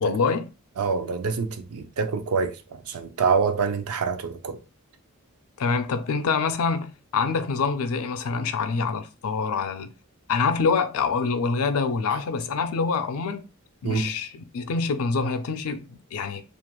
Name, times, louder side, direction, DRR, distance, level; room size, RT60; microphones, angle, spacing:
voice 1, 0.0-0.5 5.6-9.9 10.3-13.4 13.8-16.4, left 5 dB, 70° left, 0.4 m, -26 dB
voice 2, 0.8-4.6 13.8-14.1, right 5 dB, 75° right, 0.5 m, -26 dB
2.9 x 2.4 x 2.2 m
head